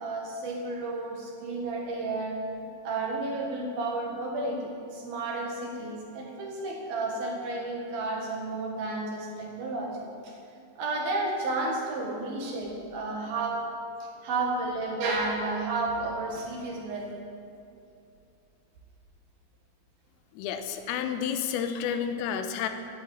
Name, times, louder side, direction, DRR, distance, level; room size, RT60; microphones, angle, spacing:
voice 1, 0.0-2.4 2.8-10.0 10.2-10.4 10.8-13.7 14.0-17.1, right 2 dB, 55° right, 0 dB, 3.1 m, -32 dB
voice 2, 20.4-22.7, left 8 dB, 90° left, 7 dB, 3.5 m, -30 dB
12.0 x 12.0 x 8.8 m, 2.6 s
omnidirectional pair, 5.9 m